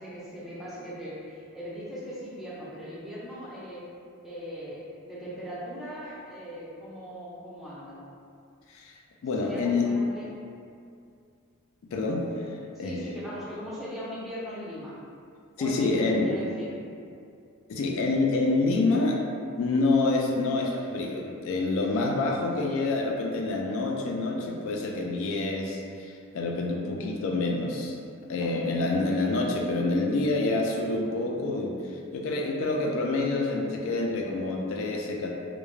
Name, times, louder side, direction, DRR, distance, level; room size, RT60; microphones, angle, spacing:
voice 1, 0.0-3.8 4.2-8.1 9.4-10.3 12.7-15.0 15.6-16.7 28.3-28.6, equal, ahead, -9 dB, 0.5 m, -39 dB
voice 2, 8.7-9.9 11.9-13.0 15.6-16.3 17.7-19.2 19.6-28.0 28.3-35.3, left 3 dB, 65° left, 0 dB, 0.3 m, -27 dB
2.3 x 2.1 x 3.0 m, 2.4 s
head